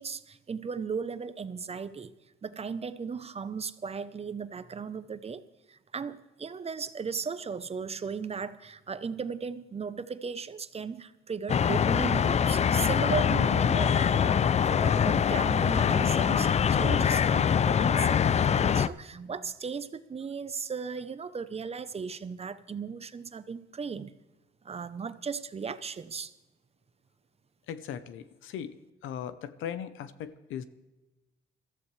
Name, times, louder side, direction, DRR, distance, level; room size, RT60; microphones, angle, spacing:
voice 1, 0.0-2.1 2.4-5.4 5.7-24.1 24.6-26.3, right 5 dB, 30° right, 13 dB, 0.7 m, -36 dB
sound 1, 11.5-18.9, left 7 dB, 35° left, 0.4 m, -24 dB
voice 2, 27.7-28.7 29.0-30.6, left 9 dB, 85° left, 13 dB, 0.8 m, -38 dB
22.0 x 14.0 x 3.3 m, 1.1 s
cardioid pair, 90°, 20 cm